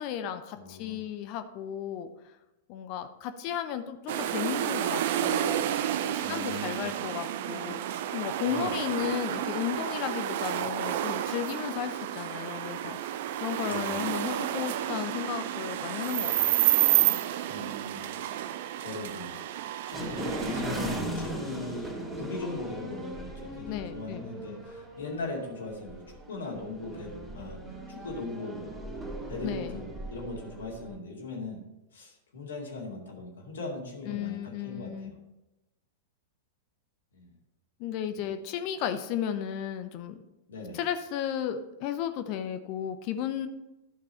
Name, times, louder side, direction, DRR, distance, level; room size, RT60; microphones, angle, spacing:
voice 1, 0.0-2.1 2.7-5.7 6.0-16.7 23.6-24.3 29.4-29.8 34.0-35.1 37.8-40.2 40.7-43.5, left 10 dB, 45° left, 9 dB, 0.6 m, -34 dB
voice 2, 0.5-1.0 6.2-6.8 8.4-8.7 13.6-14.0 17.5-18.0 18.3-18.5 18.8-19.3 19.9-26.0 26.3-28.8 29.3-31.6 31.9-35.1 37.1-37.3 38.2-38.3 40.5-40.8, left 2 dB, 70° left, -2 dB, 2.5 m, -39 dB
sound 1, 4.1-21.0, right 12 dB, 55° right, 0.5 m, -30 dB
sound 2, 19.9-31.0, right 1 dB, 10° right, 2.4 m, -38 dB
11.0 x 6.2 x 4.3 m, 0.97 s
figure-of-eight pair, 95°, 0 cm